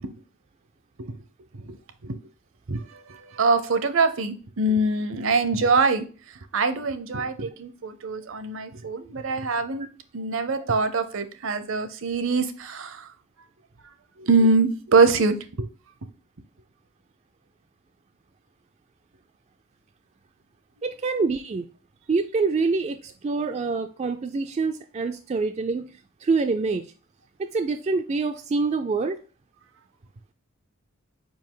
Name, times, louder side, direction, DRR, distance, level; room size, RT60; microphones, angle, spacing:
voice 1, 3.3-6.1 6.5-9.9 10.1-13.1 14.2-15.7, right 3 dB, 65° right, 10 dB, 0.7 m, -23 dB
voice 2, 20.8-21.7 22.1-25.9 26.2-26.9 27.4-29.2, right 4 dB, 30° right, 6 dB, 0.3 m, -26 dB
5.2 x 4.8 x 3.8 m, 0.39 s
head